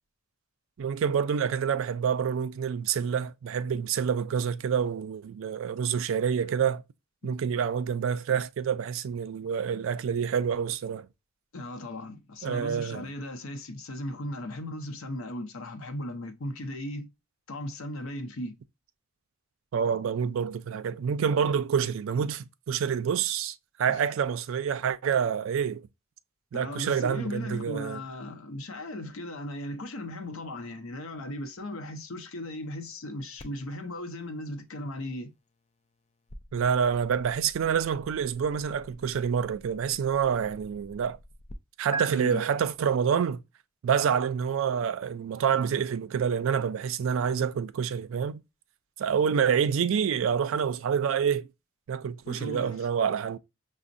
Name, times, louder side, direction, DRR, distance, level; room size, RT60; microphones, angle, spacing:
voice 1, 0.8-6.8 7.2-11.1 12.4-13.1 19.7-25.9 26.5-28.0 36.5-41.2 41.8-43.4 43.8-48.4 49.0-51.5 51.9-53.4, right 7 dB, 65° right, 0.3 m, -27 dB
voice 2, 11.5-17.1 17.5-18.5 23.9-24.1 26.5-35.3 42.1-42.4 52.3-52.9, left 1 dB, 70° left, 0.6 m, -37 dB
sound 1, 33.4-41.6 41.9-42.1, right 2 dB, 30° left, 0.4 m, -44 dB
5.8 x 2.1 x 2.5 m
head